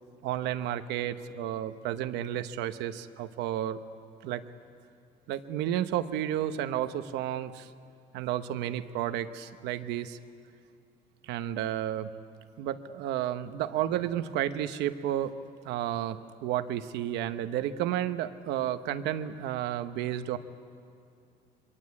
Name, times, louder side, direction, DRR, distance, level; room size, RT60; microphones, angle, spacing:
voice 1, 0.2-3.8 4.2-4.4 5.3-7.7 8.1-10.2 11.2-12.1 12.6-15.3 15.6-20.4, right 11 dB, 90° right, 10 dB, 1.1 m, -32 dB
26.5 x 23.0 x 8.6 m, 2.4 s
cardioid pair, 110°, 17 cm